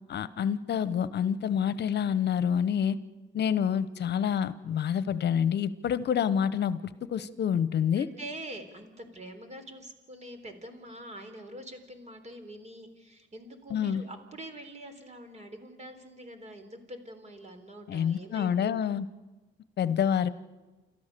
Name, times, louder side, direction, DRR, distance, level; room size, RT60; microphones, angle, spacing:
voice 1, 0.1-3.0 3.3-8.1 13.7-14.0 17.9-19.0 19.8-20.3, left 8 dB, 60° left, 15 dB, 1.0 m, -27 dB
voice 2, 8.0-18.8, right 1 dB, 35° right, 7 dB, 3.8 m, -45 dB
29.5 x 13.5 x 6.9 m, 1.2 s
cardioid pair, 90°, 20 cm